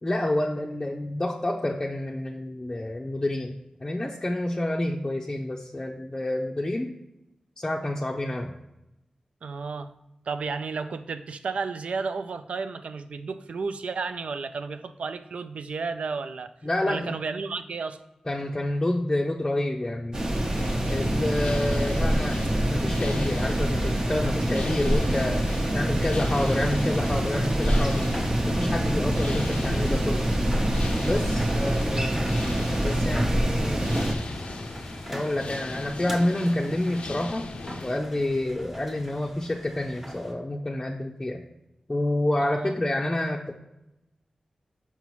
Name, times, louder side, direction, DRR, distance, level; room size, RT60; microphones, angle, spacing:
voice 1, 0.0-3.5 3.8-6.9 7.6-8.5 16.6-17.2 18.3-20.2 20.8-22.4 22.7-25.4 25.7-28.1 28.4-30.3 31.0-32.2 32.8-33.8 35.1-37.5 37.8-41.4 41.9-43.5, left 1 dB, 20° left, -2 dB, 0.5 m, -28 dB
voice 2, 9.4-9.9 10.3-16.5 16.9-18.0 31.4-31.8 42.4-42.7, right 4 dB, 80° right, 10 dB, 0.4 m, -32 dB
sound 1, 20.1-34.1, right 1 dB, 35° right, 0.9 m, -25 dB
sound 2, 20.5-38.0, left 3 dB, 75° left, 0.4 m, -39 dB
sound 3, 21.4-40.3, equal, 15° right, 1.1 m, -38 dB
5.9 x 5.5 x 3.0 m, 0.89 s
wide cardioid pair, 100°, 2 cm